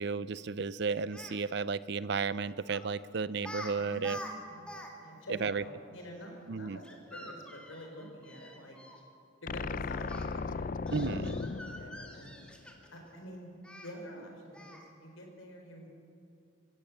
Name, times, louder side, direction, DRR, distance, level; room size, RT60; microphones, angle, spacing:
voice 1, 0.0-4.2 5.4-5.6 6.5-6.8 10.9-11.5, right 5 dB, 60° right, 17 dB, 0.5 m, -33 dB
Speech, 1.1-1.4 2.7-2.9 3.4-3.7 4.0-4.9 5.2-5.3 6.8-9.0 10.1-10.3 10.9-13.0 13.6-13.9 14.5-14.9, left 1 dB, 5° left, 2.0 m, -46 dB
voice 2, 3.8-4.1 4.5-6.8 7.1-8.8 9.4-12.3 12.9-13.5 13.8-15.9, equal, 90° left, 2 dB, 4.4 m, -48 dB
sound 1, 9.5-12.8, left 4 dB, 45° left, 0.4 m, -37 dB
25.5 x 15.5 x 7.4 m, 2.5 s
head